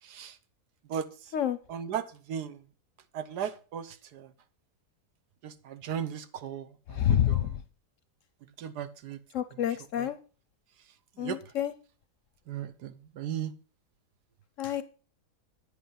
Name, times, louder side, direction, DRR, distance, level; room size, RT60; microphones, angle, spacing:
voice 1, 0.0-0.3 0.9-1.1 1.7-2.6 3.1-4.3 5.4-7.5 8.6-9.2 10.0-10.1 11.2-11.4 12.5-13.5, right 9 dB, 80° right, 1.4 m, -36 dB
voice 2, 6.9-7.5 9.3-10.2 11.2-11.7 14.6-14.8, left 10 dB, 65° left, 0.9 m, -28 dB
9.8 x 8.0 x 5.6 m
omnidirectional pair, 1.7 m